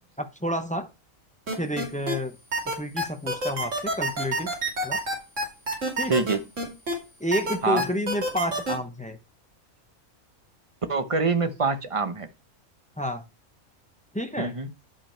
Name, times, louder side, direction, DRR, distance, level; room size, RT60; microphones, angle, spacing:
voice 1, 0.2-0.9 1.6-2.4 2.8-4.5 4.8-5.0 6.0-6.1 7.2-9.2 13.0-13.2 14.1-14.6, equal, 10° left, 7 dB, 0.6 m, -29 dB
sound 1, 1.5-2.1 2.5-6.9 7.3-8.7, right 1 dB, 55° right, 3.1 m, -27 dB
voice 2, 6.1-6.4 7.6-7.8 10.9-12.3 14.4-14.7, right 4 dB, 25° right, 8 dB, 0.9 m, -25 dB
11.0 x 5.4 x 4.4 m, 0.28 s
omnidirectional pair, 1.5 m